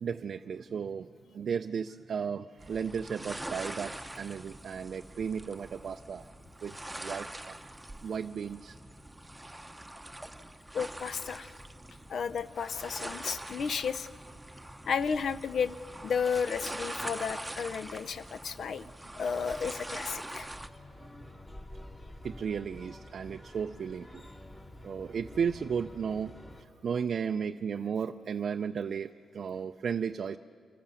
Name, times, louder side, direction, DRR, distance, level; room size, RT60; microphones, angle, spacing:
voice 1, 0.0-6.3 6.6-7.6 8.0-8.8 18.8-18.9 21.0-21.1 22.2-24.3 24.8-30.4, right 6 dB, 60° right, 8 dB, 0.4 m, -35 dB
sound 1, 2.6-20.7, right 1 dB, 10° right, 0.8 m, -43 dB
voice 2, 10.7-11.5 12.1-14.1 14.9-15.8 16.0-18.8 19.1-20.5, left 6 dB, 65° left, 13 dB, 0.5 m, -33 dB
sound 2, 20.5-26.6, left 1 dB, 25° left, 2.3 m, -49 dB
26.5 x 14.5 x 6.9 m, 2.3 s
cardioid pair, 70°, 0 cm